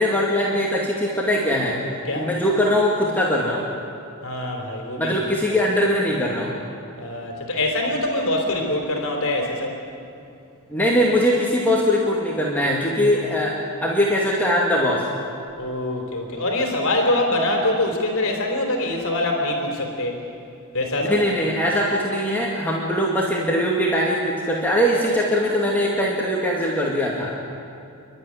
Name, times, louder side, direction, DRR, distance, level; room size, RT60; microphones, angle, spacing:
voice 1, 0.0-1.8 2.1-3.6 5.0-6.5 10.7-13.6 13.8-15.0 21.0-27.3, equal, 10° left, -4 dB, 2.2 m, -21 dB
voice 2, 4.2-5.1 7.0-9.7 15.6-20.2 20.7-21.2, left 1 dB, 65° left, 2 dB, 3.4 m, -24 dB
29.0 x 12.0 x 9.8 m, 2.6 s
head